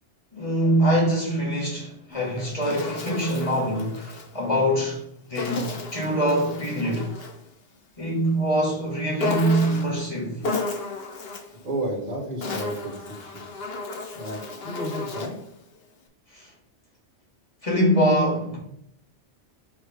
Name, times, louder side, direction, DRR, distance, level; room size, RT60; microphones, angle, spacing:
voice 1, 0.3-5.0 5.3-7.1 8.0-10.4 16.3-16.5 17.6-18.6, right 1 dB, 30° left, 2.0 m, -24 dB
Insect, 2.1-4.3 5.4-7.4 9.2-10.0 10.4-11.6 12.2-15.5, left 3 dB, 60° left, 1.1 m, -33 dB
voice 2, 11.2-13.5 14.1-15.4, right 1 dB, 35° right, 1.9 m, -33 dB
5.8 x 3.4 x 5.0 m
omnidirectional pair, 1.2 m